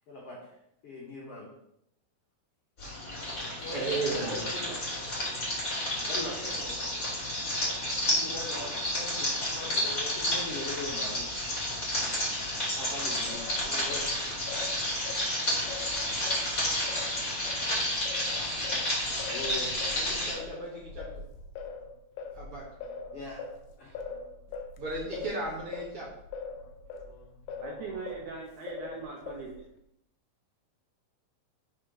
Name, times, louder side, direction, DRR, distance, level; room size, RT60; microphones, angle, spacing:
voice 1, 0.1-0.4 0.8-1.5 3.6-4.8 6.1-6.8 8.1-11.3 12.7-13.4 13.7-14.3 15.7-15.8 19.3-19.7 23.1-23.4 23.8-23.9, left 2 dB, 60° left, -5 dB, 1.7 m, -40 dB
sound 1, 2.8-20.3, left 1 dB, 20° left, 2.6 m, -31 dB
voice 2, 3.7-4.4 20.0-21.1 22.4-22.6 24.8-26.1, right 3 dB, 50° right, -5 dB, 2.0 m, -35 dB
Singing, 13.3-17.6 18.0-28.3 28.7-29.7, left 5 dB, 75° left, 1.8 m, -42 dB
voice 3, 27.6-29.5, right 5 dB, 70° right, -1 dB, 2.0 m, -40 dB
5.7 x 4.3 x 5.0 m, 0.78 s
omnidirectional pair, 4.1 m